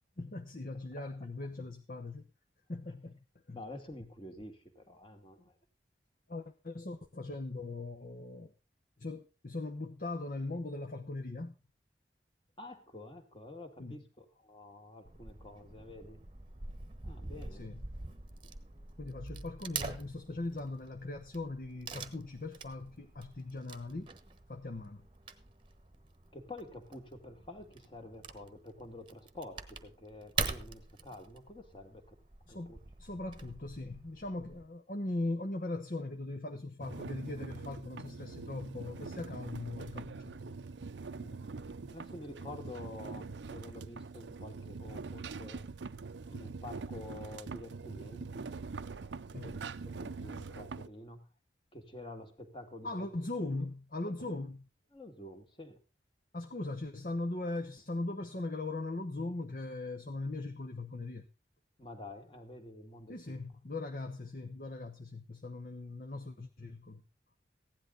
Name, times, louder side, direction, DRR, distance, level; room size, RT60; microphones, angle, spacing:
voice 1, 0.2-2.3 2.7-3.2 3.5-3.6 6.3-8.5 9.0-11.5 13.8-14.0 17.5-17.8 19.0-24.1 24.5-25.1 32.5-40.5 49.3-49.6 52.8-54.7 56.3-61.3 63.1-67.1, left 2 dB, 50° left, 1.0 m, -40 dB
voice 2, 3.5-5.6 12.6-16.2 17.0-17.7 26.3-32.2 32.5-32.8 41.2-45.7 46.3-48.6 48.9-51.3 51.7-53.1 53.5-53.7 54.1-54.4 54.9-55.8 61.8-63.4, left 1 dB, 30° left, 2.1 m, -49 dB
Wood / Tearing, 15.1-34.7, right 4 dB, 30° right, 1.1 m, -45 dB
sound 1, 36.8-50.9, right 4 dB, 90° right, 0.6 m, -44 dB
16.0 x 10.5 x 3.9 m
head